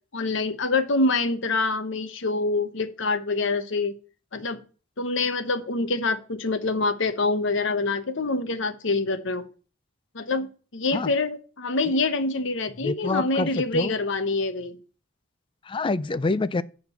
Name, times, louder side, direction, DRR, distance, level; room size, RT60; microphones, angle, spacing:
voice 1, 0.1-3.9 4.3-4.6 5.0-9.5 10.1-14.8, left 3 dB, 65° left, 1.0 m, -26 dB
voice 2, 12.8-13.9 15.7-16.6, left 3 dB, 25° left, 0.4 m, -26 dB
8.0 x 5.2 x 6.8 m
head